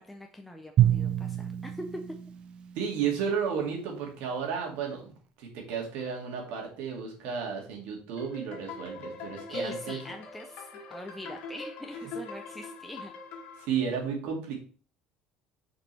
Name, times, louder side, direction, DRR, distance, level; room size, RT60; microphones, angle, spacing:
voice 1, 0.0-2.0 9.5-13.1, left 1 dB, 5° left, 3 dB, 0.6 m, -43 dB
Drum, 0.8-3.2, right 11 dB, 40° right, 0.6 m, -27 dB
voice 2, 2.8-10.0 13.6-14.5, right 7 dB, 70° right, 1 dB, 2.3 m, -33 dB
sound 1, 8.2-13.7, left 2 dB, 60° left, 1.8 m, -41 dB
7.3 x 5.1 x 3.3 m, 0.38 s
cardioid pair, 150°, 3 cm